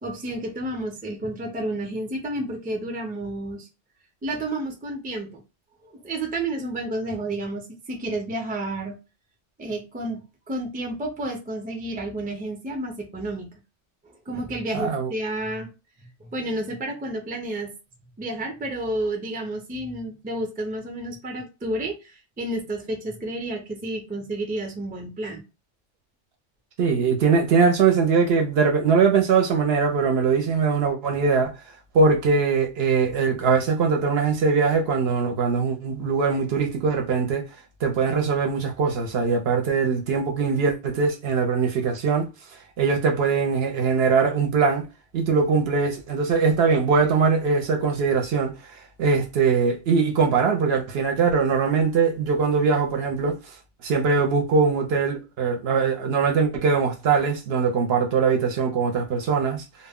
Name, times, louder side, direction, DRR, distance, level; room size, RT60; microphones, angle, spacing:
voice 1, 0.0-3.7 4.2-5.4 5.8-9.0 9.6-10.2 10.5-13.5 14.3-15.7 16.2-17.7 18.2-25.4, right 1 dB, 15° right, 0.4 m, -30 dB
voice 2, 14.7-15.1 26.8-31.6 31.9-37.5 37.8-42.3 42.8-44.9 45.1-53.4 53.8-59.6, right 5 dB, 65° right, 0.7 m, -21 dB
2.1 x 2.1 x 3.5 m
omnidirectional pair, 1.2 m